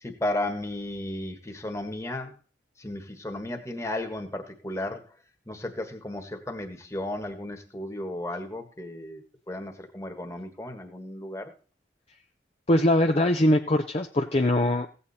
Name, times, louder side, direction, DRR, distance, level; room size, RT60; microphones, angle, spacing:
voice 1, 0.0-2.4 2.8-5.1 5.5-9.2 9.5-11.5, left 1 dB, 15° left, 4 dB, 1.6 m, -34 dB
voice 2, 12.7-14.9, left 1 dB, 35° left, 3 dB, 0.7 m, -22 dB
16.0 x 8.4 x 4.2 m, 0.37 s
head